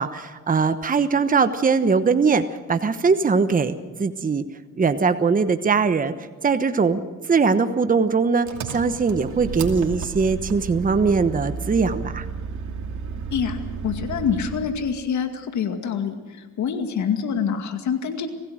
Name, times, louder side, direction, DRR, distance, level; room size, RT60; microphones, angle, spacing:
voice 1, 0.0-4.4 4.8-6.1 6.4-7.0 7.3-12.3, right 5 dB, 30° right, 10 dB, 1.1 m, -21 dB
Engine, 8.4-14.7, right 5 dB, 70° right, 2.7 m, -32 dB
voice 2, 13.8-18.3, left 7 dB, 70° left, 6 dB, 2.2 m, -26 dB
25.0 x 16.5 x 6.4 m, 1.4 s
cardioid pair, 90°, 30 cm